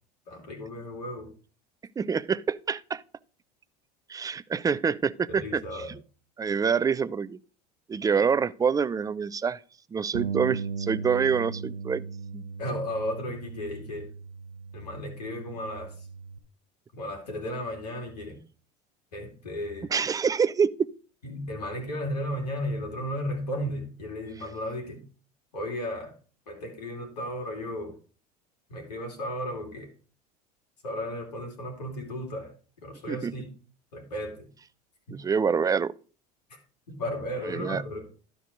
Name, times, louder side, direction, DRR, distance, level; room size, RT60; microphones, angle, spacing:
voice 1, 0.3-1.3 5.3-5.9 12.6-14.1 14.7-16.1 16.9-18.4 19.1-19.9 21.2-25.0 25.5-26.1 26.5-27.9 28.7-29.9 30.8-32.5 32.8-33.5 33.9-34.5 35.1-35.2 36.5-36.6 36.9-38.0, left 1 dB, 75° left, 2.8 m, -34 dB
voice 2, 2.0-3.0 4.1-6.0 6.4-7.4 7.9-9.6 9.9-12.1 12.3-12.4 19.9-20.9 33.1-33.3 35.2-35.9 37.5-37.8, right 6 dB, 15° right, 0.5 m, -26 dB
Bass guitar, 10.1-16.4, right 5 dB, 85° right, 0.8 m, -37 dB
12.0 x 4.6 x 5.1 m
hypercardioid pair, 75°, 20 cm